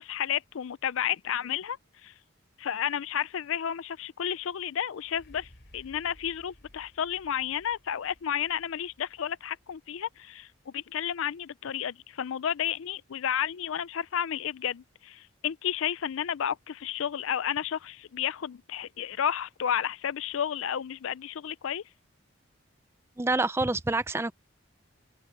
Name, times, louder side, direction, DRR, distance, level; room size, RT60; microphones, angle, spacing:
voice 1, 0.0-1.8 2.0-2.1 2.6-21.8, left 9 dB, 70° left, 0.4 m, -32 dB
sound 1, 4.9-12.7 13.3-13.4, equal, 50° left, 4.8 m, -59 dB
voice 2, 23.2-24.3, right 2 dB, 10° right, 0.4 m, -27 dB
open air
head